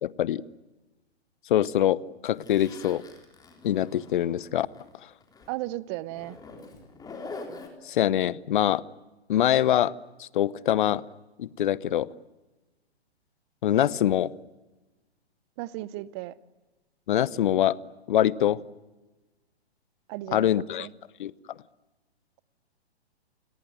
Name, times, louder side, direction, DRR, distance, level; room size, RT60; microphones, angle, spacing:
voice 1, 0.0-0.4 1.5-3.0 3.6-4.7 7.8-8.8 9.3-9.9 10.2-11.0 11.4-12.1 13.6-14.3 17.1-17.8 18.1-18.6 20.3-20.9 21.2-21.3, left 11 dB, 50° left, 1.0 m, -24 dB
Zipper (clothing), 2.4-4.9 5.2-5.5 6.1-7.7, left 3 dB, 10° left, 3.8 m, -44 dB
voice 2, 5.5-6.4 15.6-16.3 20.1-20.5 20.8-20.9, right 17 dB, 25° right, 0.8 m, -35 dB
29.0 x 18.5 x 9.4 m
figure-of-eight pair, 125°, 33 cm